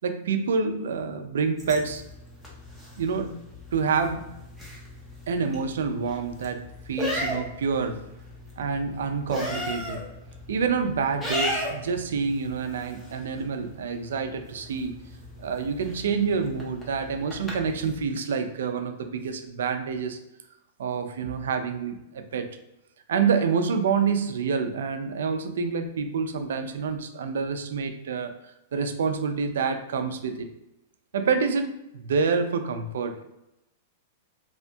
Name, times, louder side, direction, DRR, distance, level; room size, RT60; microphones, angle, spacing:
voice 1, 0.0-2.0 3.0-3.4 3.7-4.3 5.3-8.0 8.6-10.0 10.5-15.0 15.4-20.2 20.8-22.5 23.1-28.3 28.7-30.5 31.1-33.2, right 5 dB, 90° right, 7 dB, 0.3 m, -27 dB
sound 1, 1.6-18.0, left 1 dB, 5° left, 0.5 m, -37 dB
2.7 x 2.6 x 2.2 m, 0.89 s
supercardioid pair, 175°, 0 cm